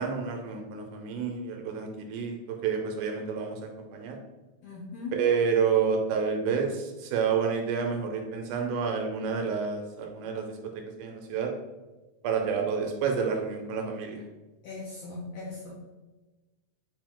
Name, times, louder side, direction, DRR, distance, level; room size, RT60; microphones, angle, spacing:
voice 1, 0.0-4.2 5.1-11.5 12.2-14.2, right 6 dB, 80° right, 3 dB, 2.0 m, -29 dB
voice 2, 4.6-5.1 14.6-15.9, left 3 dB, 75° left, -5 dB, 1.6 m, -39 dB
5.1 x 2.7 x 3.6 m, 1.2 s
omnidirectional pair, 3.7 m